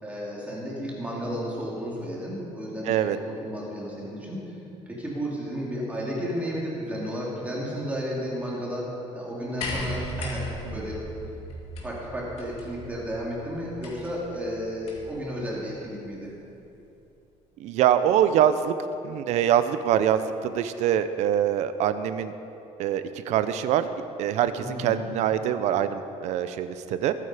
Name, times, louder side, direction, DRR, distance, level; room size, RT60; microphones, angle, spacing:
voice 1, 0.0-4.5 4.9-11.0 11.8-16.3 24.6-25.0, equal, 10° right, -5 dB, 2.8 m, -33 dB
voice 2, 2.9-3.2 10.7-10.9 17.6-18.7 19.0-22.3 22.8-23.9 24.2-27.1, right 10 dB, 65° right, 11 dB, 0.7 m, -24 dB
sound 1, 9.6-15.2 16.3-16.4, equal, 55° left, 2.6 m, -37 dB
21.5 x 8.8 x 5.0 m, 2.9 s
cardioid pair, 175°, 12 cm